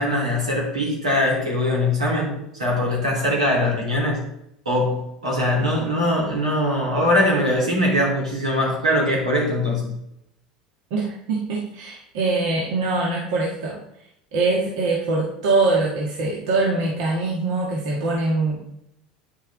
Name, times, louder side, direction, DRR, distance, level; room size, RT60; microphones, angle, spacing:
voice 1, 0.0-4.2 4.6-9.9, left 1 dB, 85° right, -3 dB, 3.4 m, -22 dB
voice 2, 10.9-13.8 14.3-18.6, right 3 dB, 60° right, -3 dB, 1.7 m, -23 dB
9.5 x 6.4 x 3.7 m, 0.78 s
figure-of-eight pair, 75°, 4 cm